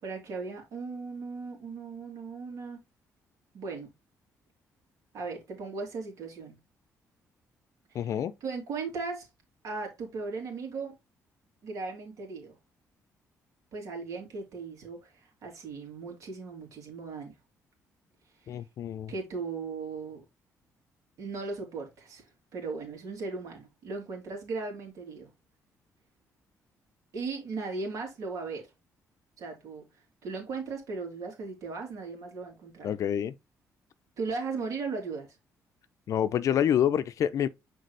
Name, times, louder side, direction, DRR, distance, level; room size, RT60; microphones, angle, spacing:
voice 1, 0.0-2.8 3.5-3.9 5.1-6.6 7.9-9.3 9.6-10.9 11.6-12.6 13.7-17.3 18.4-18.6 19.1-20.2 21.2-25.3 27.1-28.7 29.4-32.9 34.2-35.4, right 4 dB, 70° right, 3.3 m, -37 dB
voice 2, 7.9-8.3 18.5-19.1 32.8-33.3 36.1-37.5, left 9 dB, 65° left, 0.6 m, -27 dB
6.5 x 4.5 x 3.3 m
cardioid pair, 100°, 6 cm